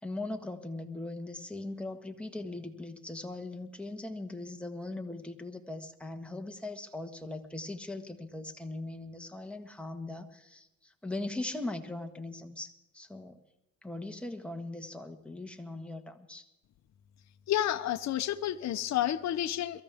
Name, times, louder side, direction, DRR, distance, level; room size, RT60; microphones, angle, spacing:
voice 1, 0.0-13.4 13.8-16.5, left 2 dB, 5° left, 4 dB, 1.6 m, -40 dB
voice 2, 17.5-19.8, left 12 dB, 65° left, 8 dB, 0.8 m, -30 dB
22.5 x 14.5 x 3.6 m, 0.94 s
cardioid pair, 90°, 30 cm